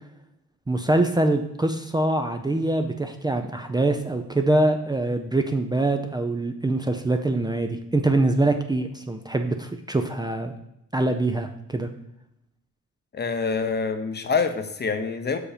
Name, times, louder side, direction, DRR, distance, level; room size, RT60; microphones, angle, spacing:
voice 1, 0.7-10.5 10.9-11.9, right 2 dB, 15° right, 5 dB, 0.5 m, -24 dB
voice 2, 13.1-15.4, left 5 dB, 35° left, 8 dB, 0.8 m, -26 dB
6.0 x 4.9 x 5.1 m, 0.82 s
cardioid pair, 90°, 30 cm